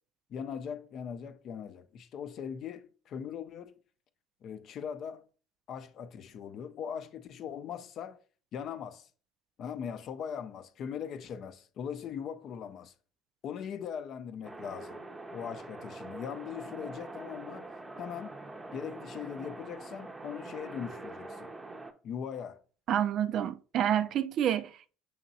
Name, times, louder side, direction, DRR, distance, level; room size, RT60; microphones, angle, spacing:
voice 1, 0.3-3.8 4.4-5.2 5.7-8.2 8.5-9.1 9.6-12.9 13.4-15.0 15.3-17.7 18.0-18.4 18.7-21.5 22.0-22.6, left 8 dB, 55° left, 0.5 m, -40 dB
sound 1, 14.4-21.9, right 2 dB, 20° right, 0.6 m, -44 dB
voice 2, 22.9-25.0, right 10 dB, 55° right, 0.3 m, -29 dB
6.4 x 3.0 x 2.6 m
hypercardioid pair, 65°, 0 cm